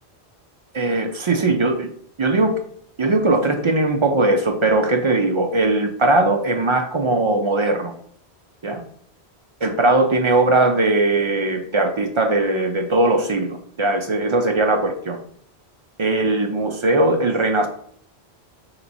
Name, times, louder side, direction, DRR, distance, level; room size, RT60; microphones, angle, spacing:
voice 1, 0.7-1.9 2.2-2.5 3.0-7.9 8.6-8.8 9.6-15.2 16.0-17.7, right 2 dB, 55° right, 4 dB, 0.3 m, -19 dB
3.4 x 3.0 x 3.9 m, 0.62 s
omnidirectional pair, 1.1 m